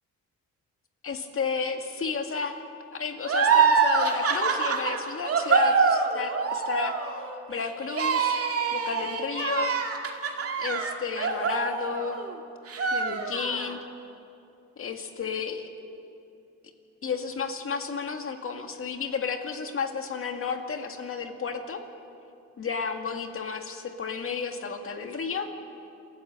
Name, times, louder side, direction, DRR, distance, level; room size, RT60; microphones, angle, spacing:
voice 1, 1.0-2.5 2.9-8.4 8.7-9.8 10.6-12.2 12.9-13.8 14.8-15.7 17.0-21.8 22.6-25.5, left 5 dB, 45° left, 5 dB, 2.1 m, -32 dB
sound 1, 3.2-12.3 12.7-13.7, right 5 dB, 50° right, 2.4 m, -25 dB
27.5 x 13.5 x 7.6 m, 2.6 s
cardioid pair, 90°, 30 cm